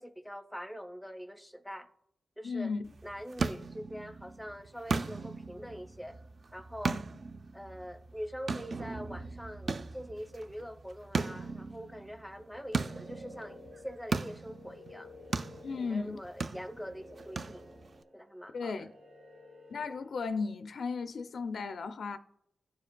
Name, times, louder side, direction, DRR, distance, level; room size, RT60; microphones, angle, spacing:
voice 1, 0.0-1.9 2.4-2.7 3.0-6.2 6.5-7.0 7.5-15.1 15.7-17.7 18.1-18.9, equal, ahead, 0.7 m, -44 dB
voice 2, 2.4-2.9 15.6-16.3 18.5-18.9 19.7-22.2, left 4 dB, 70° left, 0.4 m, -35 dB
sound 1, 2.8-18.0, right 4 dB, 55° right, 0.4 m, -38 dB
sound 2, 12.4-20.2, left 1 dB, 70° right, 1.3 m, -53 dB
14.5 x 4.8 x 2.2 m
cardioid pair, 75°, 0 cm